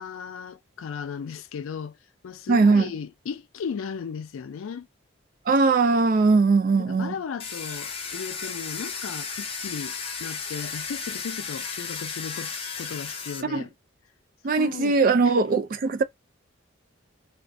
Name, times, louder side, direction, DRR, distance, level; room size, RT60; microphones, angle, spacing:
voice 1, 0.0-2.0 2.2-4.9 6.8-13.7 14.6-15.0 15.2-15.3, left 6 dB, 90° left, 0.4 m, -36 dB
voice 2, 2.5-2.9 5.5-7.1 13.5-13.6 14.4-16.0, right 4 dB, 45° right, 0.3 m, -20 dB
Domestic sounds home sounds, 7.4-13.4, left 5 dB, 30° left, 0.5 m, -34 dB
2.4 x 2.1 x 2.5 m
head